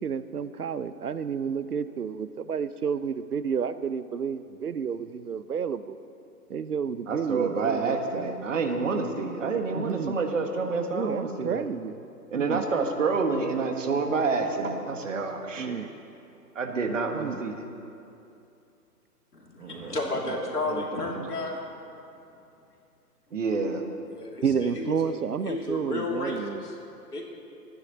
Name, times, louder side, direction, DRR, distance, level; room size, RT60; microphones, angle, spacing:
voice 1, 0.0-6.0 6.5-8.3 9.7-10.2 10.9-12.0 12.3-12.6 15.6-15.9 16.7-17.4 24.4-26.7, right 6 dB, 65° right, 13 dB, 0.7 m, -31 dB
voice 2, 7.1-11.7 12.3-15.9 16.5-17.6 19.6-19.9 20.2-20.3 20.6-21.3 23.3-23.8, right 4 dB, 50° right, 4 dB, 1.6 m, -28 dB
voice 3, 19.3-21.6 24.1-25.2 25.4-26.8 27.1-27.3, left 2 dB, 70° left, -1 dB, 3.0 m, -32 dB
26.5 x 9.7 x 4.1 m, 2.6 s
figure-of-eight pair, 130°, 48 cm